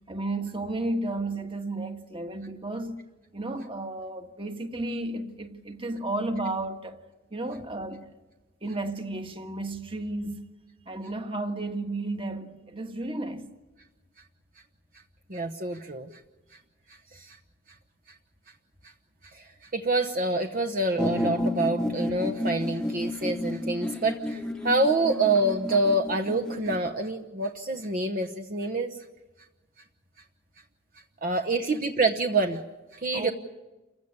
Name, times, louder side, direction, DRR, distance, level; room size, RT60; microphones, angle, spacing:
voice 1, 0.1-3.0 3.3-7.0 7.3-8.1 8.6-10.4 10.8-13.5 33.1-33.3, right 2 dB, 30° right, 1.5 m, -33 dB
voice 2, 15.3-16.1 17.1-17.4 19.3-29.0 31.2-32.6 32.9-33.3, right 2 dB, 45° right, 1.0 m, -27 dB
sound 1, 21.0-26.9, left 1 dB, 5° left, 1.1 m, -31 dB
28.5 x 15.5 x 9.9 m
head